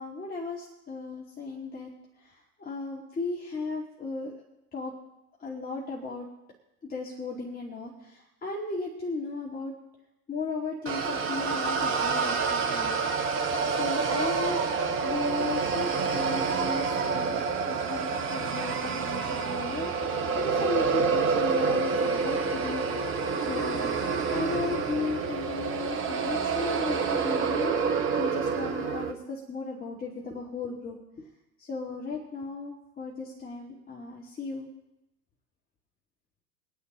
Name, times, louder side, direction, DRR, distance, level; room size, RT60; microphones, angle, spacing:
voice 1, 0.0-1.9 2.2-4.3 4.7-4.9 5.4-6.3 6.8-9.7 10.3-13.0 13.3-23.9 24.3-31.3 31.6-34.7, left 3 dB, 20° left, -3 dB, 2.2 m, -36 dB
sound 1, 10.9-29.1, right 5 dB, 25° right, 1.4 m, -28 dB
sound 2, 13.4-13.6 13.9-15.3 15.8-17.6 18.1-19.9, right 5 dB, 75° right, 2.7 m, -41 dB
23.5 x 9.4 x 3.0 m, 0.92 s
figure-of-eight pair, 90°, 46 cm